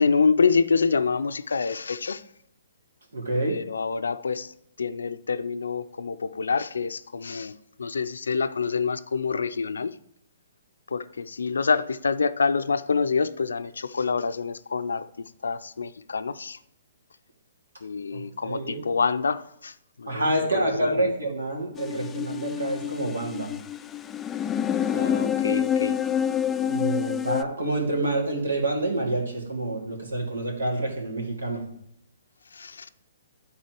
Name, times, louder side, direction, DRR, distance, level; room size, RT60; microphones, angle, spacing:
voice 1, 0.0-2.2 3.4-7.5 7.8-9.9 10.9-16.6 17.8-20.3 20.5-21.1 24.9-26.0 32.5-32.9, left 5 dB, 75° left, 12 dB, 0.5 m, -26 dB
voice 2, 3.1-3.6 18.1-18.8 20.1-23.5 26.7-31.6, right 2 dB, 80° right, -1 dB, 2.8 m, -28 dB
sound 1, 21.7-27.4, left 9 dB, 15° left, 0.4 m, -27 dB
12.0 x 4.2 x 4.5 m, 0.75 s
figure-of-eight pair, 130°, 0 cm